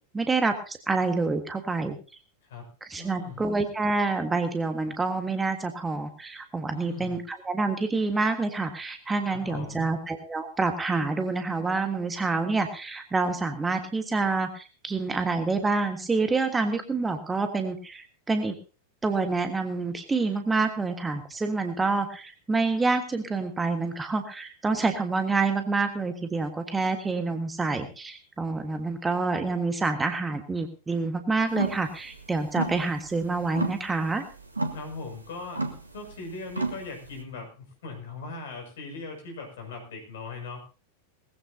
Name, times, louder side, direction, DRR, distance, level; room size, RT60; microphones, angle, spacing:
voice 1, 0.1-2.0 2.8-18.5 19.0-34.2, right 3 dB, 10° right, 7 dB, 1.5 m, -27 dB
voice 2, 2.9-3.4 6.7-7.2 9.3-9.9 34.7-35.7 35.9-40.6, left 3 dB, 60° left, 3 dB, 6.2 m, -39 dB
sound 1, 31.5-37.2, right 3 dB, 80° right, 1.8 m, -33 dB
20.0 x 15.0 x 2.8 m, 0.34 s
figure-of-eight pair, 90°, 0 cm